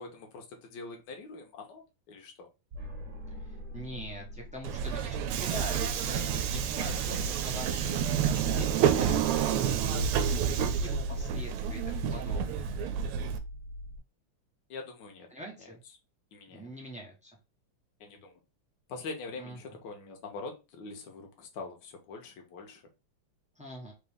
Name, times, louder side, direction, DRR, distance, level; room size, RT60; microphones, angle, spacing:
voice 1, 0.0-2.5 14.7-15.3 15.6-15.7 16.3-16.7 18.0-18.4 18.9-22.8, left 3 dB, 60° left, 2 dB, 1.5 m, -44 dB
sound 1, 2.7-14.0, left 1 dB, 45° right, 1.3 m, -43 dB
voice 2, 3.4-9.2 9.6-12.8 15.3-15.8 16.5-17.3 19.4-19.6 23.6-23.9, equal, 5° right, -1 dB, 0.5 m, -44 dB
Subway metro underground, 4.6-13.4, right 8 dB, 85° right, 1.5 m, -29 dB
4.0 x 3.1 x 3.5 m, 0.28 s
omnidirectional pair, 2.4 m